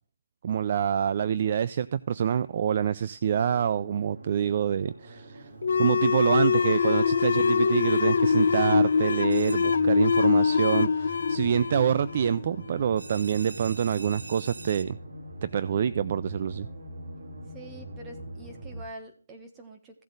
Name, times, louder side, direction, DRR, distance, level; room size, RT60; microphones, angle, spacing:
voice 1, 0.4-5.5 5.8-15.0 15.4-16.7, right 8 dB, 35° right, 16 dB, 0.3 m, -26 dB
sound 1, 3.2-18.8, right 1 dB, 55° right, 2.5 m, -43 dB
sound 2, 5.6-12.8, left 5 dB, 60° left, 0.6 m, -23 dB
sound 3, 9.3-10.1 13.0-14.8, right 3 dB, 85° right, 2.1 m, -44 dB
voice 2, 17.5-20.0, right 1 dB, 10° right, 3 dB, 1.4 m, -45 dB
15.5 x 7.9 x 2.5 m, 0.42 s
hypercardioid pair, 170°, 0 cm